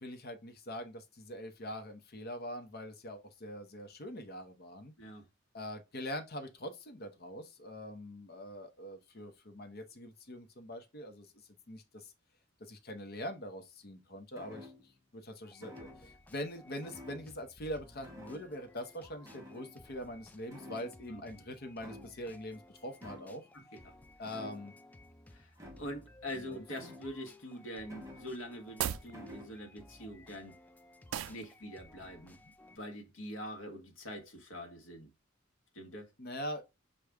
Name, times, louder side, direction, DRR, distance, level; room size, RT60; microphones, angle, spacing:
voice 1, 0.0-4.9 5.5-11.3 11.7-12.1 12.6-23.4 24.2-24.7 26.3-26.9 36.2-36.6, equal, 50° left, 0.8 m, -43 dB
sound 1, 14.3-15.1 15.6-16.2 16.8-17.7 18.0-18.7 19.2-20.2 20.5-21.3 21.8-22.4 23.0-23.5 24.2-24.9 25.6-26.1 26.7-27.4 27.9-28.6 29.1-29.6, left 1 dB, 15° right, 1.0 m, -52 dB
sound 2, 15.4-32.8, left 1 dB, 10° left, 0.3 m, -58 dB
voice 2, 23.5-23.9 25.3-30.6 31.3-35.1 35.7-36.1, equal, 80° left, 1.1 m, -44 dB
sound 3, 28.7-29.1 31.1-31.4, right 10 dB, 80° right, 0.4 m, -35 dB
6.4 x 2.3 x 3.4 m
head